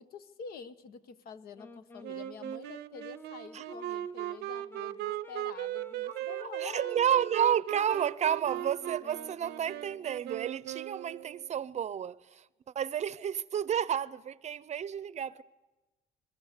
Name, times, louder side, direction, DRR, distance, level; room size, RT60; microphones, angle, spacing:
voice 1, 0.0-7.0, left 5 dB, 65° left, 1.2 m, -47 dB
Wind instrument woodwind instrument, 1.5-10.3, left 1 dB, 10° left, 0.8 m, -50 dB
Wind instrument woodwind instrument 2, 2.0-11.5, right 16 dB, 80° right, 0.7 m, -38 dB
voice 2, 6.0-12.5 12.7-15.4, right 9 dB, 45° right, 0.7 m, -31 dB
26.5 x 20.5 x 6.8 m
cardioid pair, 110°, 17 cm